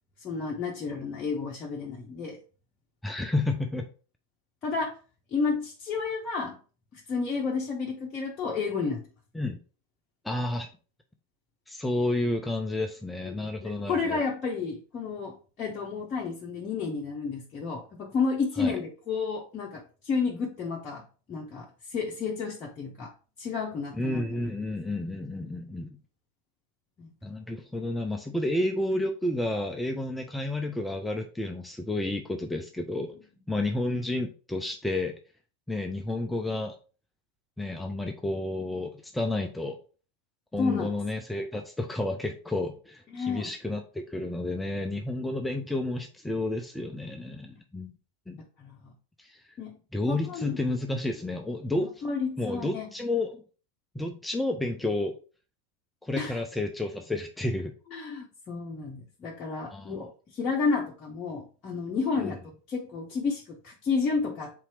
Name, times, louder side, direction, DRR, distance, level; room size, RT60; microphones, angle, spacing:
voice 1, 0.2-2.4 4.6-5.0 5.3-6.6 6.9-9.0 13.3-21.0 21.3-23.1 23.4-24.2 27.0-27.1 28.3-28.4 40.6-40.9 43.1-43.5 48.6-48.9 49.6-49.8 50.1-50.5 52.0-52.9 56.2-56.4 57.9-62.4 62.7-64.5, left 4 dB, 30° left, -2 dB, 0.8 m, -31 dB
voice 2, 3.0-3.9 9.3-9.6 10.2-10.7 11.7-14.2 18.6-18.8 23.9-26.0 27.2-33.1 33.5-35.1 35.7-36.8 37.6-39.8 40.5-47.9 48.3-48.4 49.2-49.4 49.9-51.9 52.4-53.4 53.9-55.1 56.0-57.7 59.7-59.9 62.2-62.3, left 2 dB, 5° left, 3 dB, 0.5 m, -31 dB
3.8 x 2.9 x 4.7 m, 0.37 s
figure-of-eight pair, 90°, 0 cm